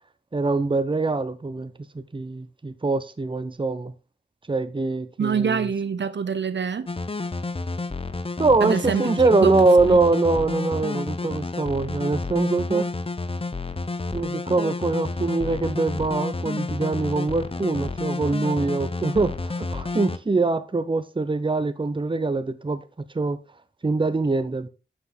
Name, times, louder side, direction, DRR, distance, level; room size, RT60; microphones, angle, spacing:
voice 1, 0.3-1.7 2.1-3.9 4.5-5.7 8.4-12.9 14.1-23.4 23.8-24.7, right 3 dB, 25° right, 0.8 m, -23 dB
voice 2, 5.2-6.9 8.6-9.5 9.9-10.0, right 6 dB, 75° right, 0.6 m, -25 dB
sound 1, 6.9-20.2, left 3 dB, 30° left, 0.7 m, -30 dB
9.8 x 5.9 x 3.8 m
wide cardioid pair, 95°, 19 cm